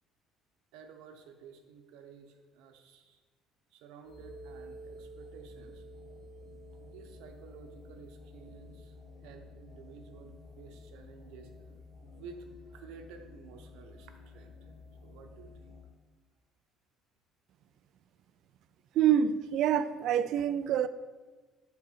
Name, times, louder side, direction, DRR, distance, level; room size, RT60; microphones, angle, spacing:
voice 1, 0.7-3.2 3.7-5.8 6.8-9.0 9.2-14.7 15.0-15.8, right 5 dB, 85° right, 0.8 m, -52 dB
sound 1, 4.0-15.8, left 1 dB, 20° left, 1.5 m, -51 dB
voice 2, 18.9-20.9, right 9 dB, 60° right, 0.3 m, -26 dB
7.4 x 3.9 x 5.8 m
cardioid pair, 150°, 0 cm